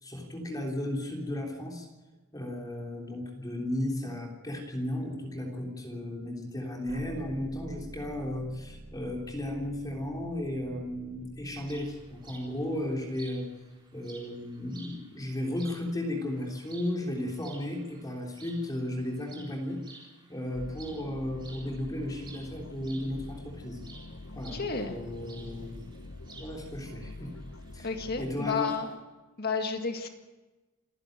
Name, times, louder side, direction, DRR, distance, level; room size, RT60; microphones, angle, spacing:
voice 1, 0.0-1.9 2.3-13.5 13.9-19.8 20.3-23.8 24.4-25.8 26.4-27.3 27.7-27.9 28.2-28.7, left 1 dB, 20° left, 0 dB, 3.5 m, -34 dB
sound 1, 6.9-13.8, right 1 dB, 45° right, 1.1 m, -49 dB
sound 2, 11.6-29.0, right 3 dB, 25° right, 3.9 m, -54 dB
sound 3, 20.5-28.4, left 2 dB, 70° left, 1.3 m, -45 dB
voice 2, 24.5-25.0 27.8-28.9 29.4-30.1, left 4 dB, 50° left, 5 dB, 1.9 m, -31 dB
27.5 x 11.0 x 8.9 m, 1.2 s
head